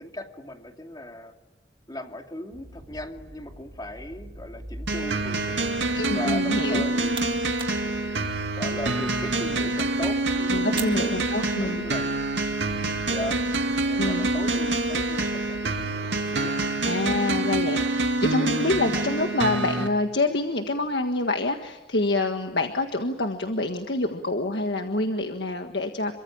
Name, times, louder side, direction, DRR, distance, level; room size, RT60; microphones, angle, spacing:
voice 1, 0.0-1.3 1.9-5.8 6.1-7.1 7.8-11.1 11.6-12.2 13.1-13.4 13.8-16.6, left 1 dB, 20° left, 4 dB, 2.6 m, -38 dB
sound 1, 2.5-15.7, equal, 60° right, 5.0 m, -45 dB
sound 2, 4.9-19.9, right 2 dB, 85° right, 2.4 m, -26 dB
voice 2, 5.9-6.9 10.5-11.8 14.0-14.3 16.8-26.1, left 2 dB, 65° left, 5 dB, 1.6 m, -26 dB
sound 3, 6.6-11.9, right 6 dB, 30° right, 2.1 m, -44 dB
27.5 x 24.0 x 8.8 m, 1.0 s
head